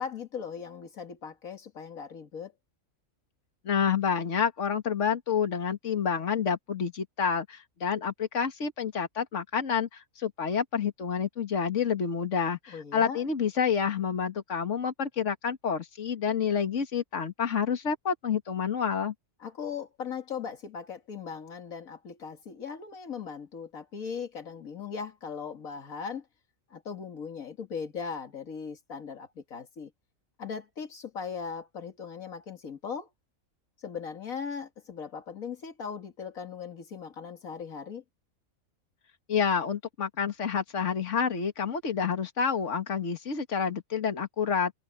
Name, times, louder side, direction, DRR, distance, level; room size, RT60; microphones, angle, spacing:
voice 1, 0.0-2.5 12.7-13.3 19.4-26.3 26.7-29.9 30.4-33.1 33.8-38.0, left 6 dB, 90° left, 2.3 m, -38 dB
voice 2, 3.7-19.1 39.3-44.7, left 7 dB, 60° left, 2.0 m, -29 dB
omnidirectional pair, 1.4 m